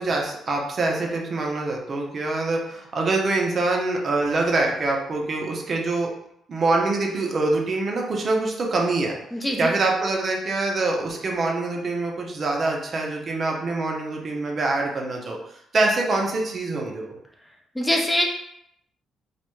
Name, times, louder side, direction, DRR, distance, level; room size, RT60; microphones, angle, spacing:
voice 1, 0.0-6.1 6.5-9.2 9.6-17.2, right 2 dB, 45° right, 0 dB, 0.5 m, -25 dB
voice 2, 17.8-18.2, equal, 10° left, 0 dB, 0.4 m, -22 dB
2.4 x 2.2 x 3.0 m, 0.75 s
cardioid pair, 90°, 0 cm